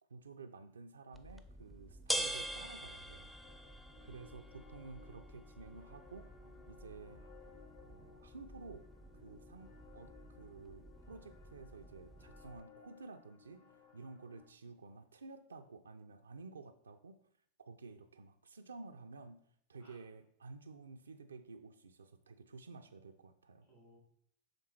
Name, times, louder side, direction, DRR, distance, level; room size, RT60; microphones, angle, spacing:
voice 1, 0.1-3.3 4.0-6.3 6.7-7.2 7.8-8.9 9.1-17.2 17.7-19.4 19.7-23.7, right 3 dB, 75° right, 6 dB, 0.4 m, -52 dB
sound 1, 1.1-12.6, right 1 dB, ahead, 0.4 m, -46 dB
sound 2, 2.4-14.5, left 7 dB, 50° left, 0.9 m, -62 dB
voice 2, 4.0-5.1 19.8-20.0 23.7-24.0, right 1 dB, 85° left, -8 dB, 2.4 m, -66 dB
6.6 x 3.5 x 4.2 m, 0.65 s
figure-of-eight pair, 90°, 0 cm